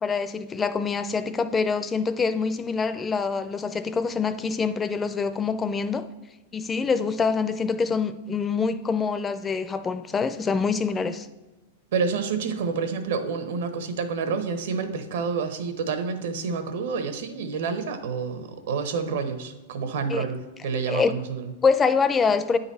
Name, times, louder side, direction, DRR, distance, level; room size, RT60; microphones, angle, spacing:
voice 1, 0.0-6.1 6.5-11.3 20.1-20.3 20.9-21.1 21.6-22.6, left 5 dB, 15° left, 0.4 m, -25 dB
voice 2, 11.9-21.5, right 5 dB, 75° right, 1.0 m, -28 dB
9.2 x 4.0 x 4.1 m
supercardioid pair, 145°, 0 cm